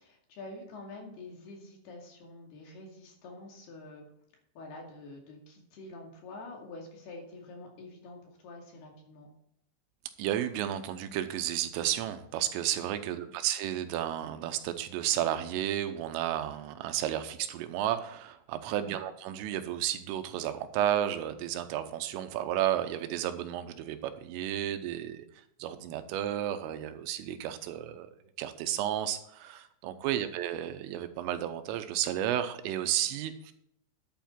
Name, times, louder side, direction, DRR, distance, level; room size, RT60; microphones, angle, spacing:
voice 1, 0.0-4.1 4.6-9.3 13.1-13.3 18.8-19.0 30.0-30.3, left 2 dB, 60° left, 0 dB, 4.0 m, -47 dB
voice 2, 10.2-25.2 25.6-28.1 28.4-33.5, right 11 dB, 90° right, 9 dB, 3.5 m, -32 dB
11.5 x 8.2 x 4.4 m, 0.74 s
omnidirectional pair, 5.7 m